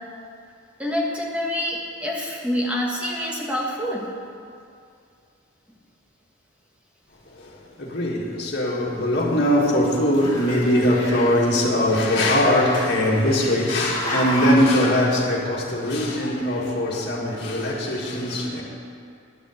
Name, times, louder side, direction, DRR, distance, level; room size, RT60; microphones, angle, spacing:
voice 1, 0.8-4.1, left 1 dB, 5° right, 1.4 m, -26 dB
voice 2, 7.8-18.6, left 1 dB, 50° left, 1.8 m, -21 dB
Growling, 8.5-9.8 10.1-11.5 12.4-13.4 13.8-14.7, left 1 dB, 15° left, 2.7 m, -31 dB
11.0 x 8.3 x 7.8 m
head